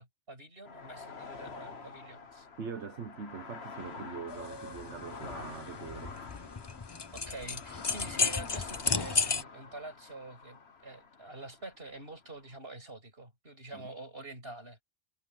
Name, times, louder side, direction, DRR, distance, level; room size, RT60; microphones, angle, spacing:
voice 1, 0.0-2.5 7.1-14.8, right 2 dB, 60° right, 7.1 m, -46 dB
sound 1, 0.7-12.6, left 5 dB, 65° left, 1.8 m, -47 dB
voice 2, 2.6-6.2 13.7-13.8, right 6 dB, 90° right, 1.5 m, -42 dB
sound 2, 4.3-9.4, left 4 dB, 30° left, 0.6 m, -33 dB
omnidirectional pair, 1.1 m